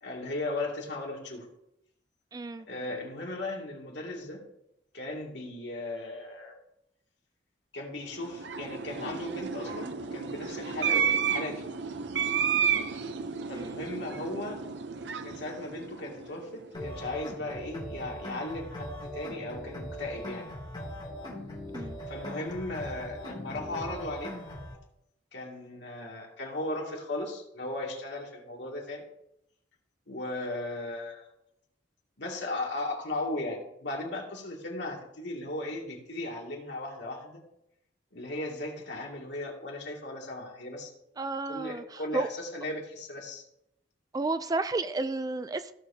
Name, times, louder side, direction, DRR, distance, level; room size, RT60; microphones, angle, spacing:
voice 1, 0.0-1.5 2.7-4.4 4.9-6.5 7.7-11.7 13.5-14.6 15.2-20.5 22.1-24.3 25.3-29.0 30.1-31.3 32.2-37.4 38.1-40.9 41.5-43.4, left 2 dB, 70° left, -1 dB, 2.4 m, -37 dB
voice 2, 2.3-2.7 13.5-13.8 21.7-22.0 41.2-42.3 44.1-45.7, right 3 dB, 20° right, 12 dB, 0.3 m, -32 dB
sound 1, 8.1-16.6, right 7 dB, 75° right, 0.7 m, -32 dB
sound 2, 16.7-24.7, equal, 25° left, 2.8 m, -40 dB
15.5 x 6.9 x 2.8 m, 0.81 s
head